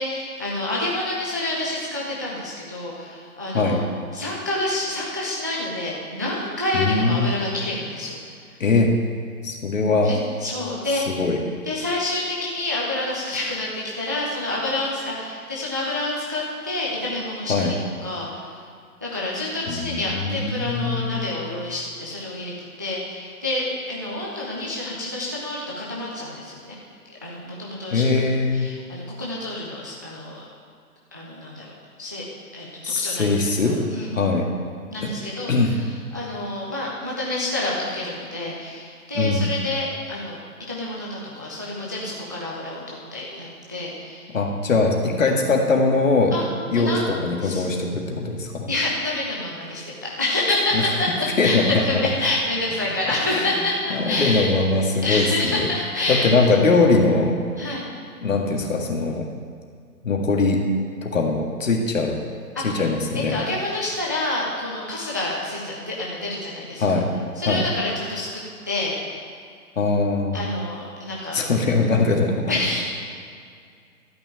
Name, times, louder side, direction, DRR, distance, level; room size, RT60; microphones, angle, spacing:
voice 1, 0.0-3.8 4.1-8.2 10.0-11.1 11.7-17.7 18.0-18.5 19.0-22.5 22.8-26.8 27.2-28.1 28.5-30.4 31.1-31.7 32.0-32.2 32.5-34.2 34.9-40.4 40.7-44.3 46.3-46.5 46.7-47.1 47.4-47.7 48.7-54.6 55.0-56.3 57.6-57.8 62.6-62.9 63.1-66.8 67.4-69.0 70.3-71.4 72.5-72.8, left 2 dB, 15° right, -5 dB, 0.5 m, -28 dB
voice 2, 6.7-7.3 8.6-8.9 9.4-10.1 11.0-11.4 17.5-17.7 19.7-21.3 27.9-28.7 32.8-33.8 34.1-34.5 35.0-35.1 35.5-35.7 39.2-39.5 44.3-46.3 46.7-48.7 50.7-50.8 51.4-52.0 53.3-53.5 53.9-55.6 56.1-57.4 58.2-59.3 60.0-60.6 61.0-62.2 62.6-63.4 66.8-67.1 67.5-67.6 69.8-70.5 71.3-72.5, left 3 dB, 55° left, 1 dB, 1.9 m, -21 dB
12.5 x 5.4 x 8.7 m, 2.2 s
figure-of-eight pair, 135°, 46 cm